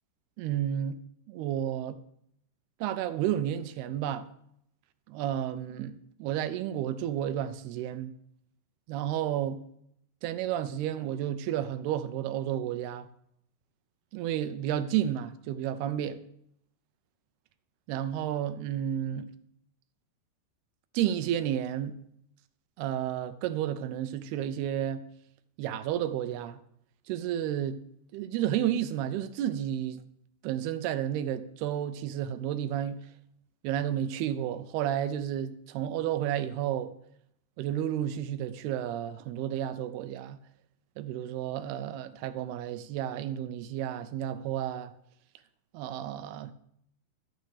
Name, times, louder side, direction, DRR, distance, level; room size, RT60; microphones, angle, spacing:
voice 1, 0.4-1.0 1.3-2.0 2.8-4.3 5.1-8.1 8.9-9.6 10.2-13.1 14.1-16.2 17.9-19.3 20.9-22.0 22.8-25.0 25.6-26.6 27.1-27.8 28.1-30.0 30.4-33.0 33.6-36.9 37.6-40.4 41.0-44.9 45.7-46.5, right 11 dB, 80° right, 2.5 m, -31 dB
12.5 x 9.2 x 4.9 m
omnidirectional pair, 4.9 m